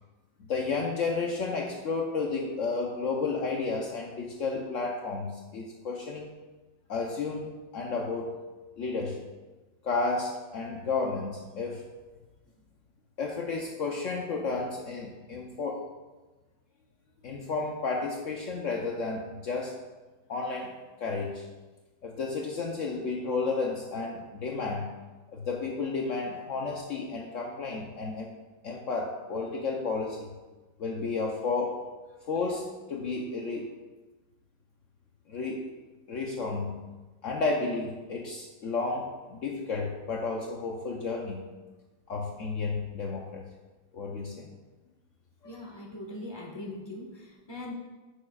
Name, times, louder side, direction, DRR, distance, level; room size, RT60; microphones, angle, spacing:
voice 1, 0.4-6.3 6.9-8.3 8.8-9.3 9.8-11.9 13.2-15.8 17.2-19.8 20.3-21.5 22.0-24.9 25.3-28.3 28.6-30.3 30.8-31.8 32.3-33.7 35.3-35.7 36.1-36.8 37.2-41.5 42.1-43.4 43.9-44.5 45.5-45.6, left 4 dB, 70° left, 0 dB, 0.7 m, -32 dB
voice 2, 45.4-47.7, left 1 dB, 15° left, -2 dB, 1.3 m, -41 dB
14.5 x 6.5 x 2.4 m, 1.2 s
omnidirectional pair, 2.3 m